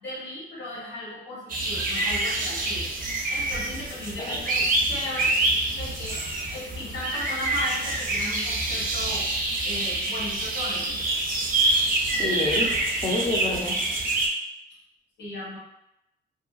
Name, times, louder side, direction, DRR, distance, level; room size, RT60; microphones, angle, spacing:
voice 1, 0.0-2.8 3.3-5.4 5.8-6.2 6.5-9.2 9.6-11.0 15.2-15.6, left 1 dB, 60° left, -8 dB, 1.2 m, -36 dB
sound 1, 1.5-14.3, right 2 dB, 45° right, 0.5 m, -26 dB
voice 2, 12.1-12.7 13.0-13.8, left 2 dB, 25° left, -2 dB, 0.7 m, -28 dB
2.7 x 2.4 x 2.3 m, 0.84 s
cardioid pair, 90°, 20 cm